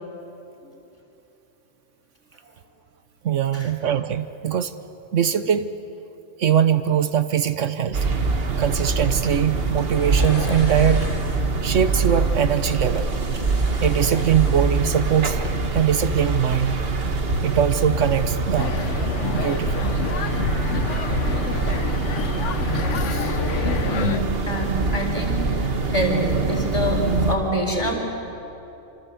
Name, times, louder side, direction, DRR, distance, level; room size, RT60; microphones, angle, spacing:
voice 1, 3.2-4.8 5.1-5.8 6.4-8.1 8.6-11.1 11.6-13.1 13.8-15.4 15.7-16.8 17.4-18.8 19.3-20.0 23.1-23.3 24.1-24.2, right 9 dB, 70° right, 11 dB, 1.2 m, -22 dB
sound 1, 7.9-27.4, right 3 dB, 50° right, 1.7 m, -24 dB
sound 2, 9.9-11.5 13.1-15.0 15.3-15.5, left 3 dB, 45° left, 1.7 m, -38 dB
sound 3, 18.6-24.2, left 7 dB, 70° left, 1.2 m, -28 dB
voice 2, 23.2-25.4 25.8-27.0 27.3-28.0, equal, 20° left, 0 dB, 4.7 m, -27 dB
27.0 x 26.5 x 8.2 m, 2.9 s
omnidirectional pair, 1.3 m